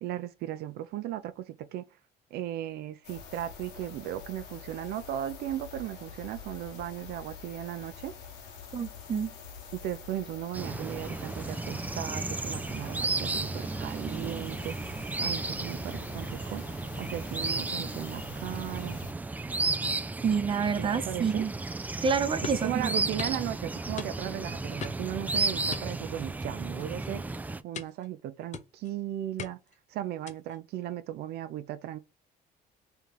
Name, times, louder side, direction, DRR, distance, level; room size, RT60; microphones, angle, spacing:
voice 1, 0.0-1.8 2.3-8.1 9.8-16.6 17.0-19.0 20.8-21.4 22.4-27.2 27.6-29.6 29.9-32.0, right 12 dB, 75° right, 0.5 m, -36 dB
sound 1, 3.0-19.1, left 5 dB, 80° left, 1.4 m, -46 dB
voice 2, 8.7-9.3 20.2-21.5 22.0-22.9, right 6 dB, 30° right, 0.7 m, -28 dB
sound 2, 10.5-27.6, right 3 dB, 10° right, 0.3 m, -33 dB
sound 3, 22.4-22.7 23.2-23.4 24.0-24.4 24.8-25.1 25.7-26.5 26.8-27.0 27.7-28.1 28.5-28.9 29.4-29.8 30.3-30.6, left 7 dB, 45° left, 0.7 m, -41 dB
3.2 x 2.8 x 3.8 m
cardioid pair, 110°, 17 cm